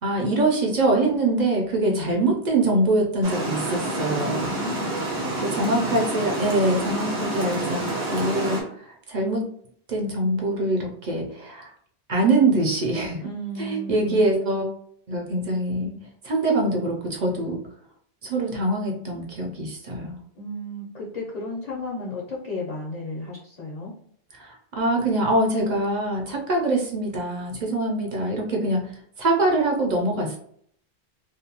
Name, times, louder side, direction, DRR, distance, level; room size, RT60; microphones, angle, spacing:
voice 1, 0.0-4.6 5.4-9.5 9.9-11.7 12.1-14.7 15.1-16.0 16.2-17.6 18.2-20.2 24.3-28.9 29.2-30.4, right 2 dB, 50° right, 0 dB, 0.7 m, -24 dB
voice 2, 1.8-2.1 4.5-5.9 13.2-14.2 20.4-23.9, left 2 dB, 45° left, -5 dB, 0.7 m, -34 dB
Water, 3.2-8.6, right 1 dB, 75° right, 1.2 m, -28 dB
2.5 x 2.2 x 2.8 m, 0.62 s
omnidirectional pair, 1.1 m